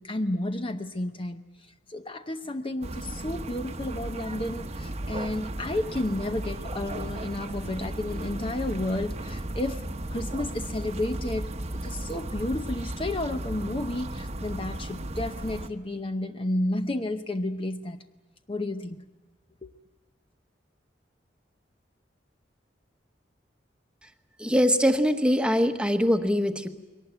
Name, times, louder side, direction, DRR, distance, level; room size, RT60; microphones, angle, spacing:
voice 1, 0.0-9.8 10.1-11.5 11.8-18.0 18.5-19.1 19.6-19.7, left 1 dB, 30° left, 7 dB, 0.7 m, -31 dB
sound 1, 2.8-15.7, right 1 dB, 35° right, 1.0 m, -35 dB
voice 2, 24.4-26.7, equal, 5° right, 6 dB, 1.1 m, -22 dB
22.5 x 18.5 x 9.0 m, 1.3 s
head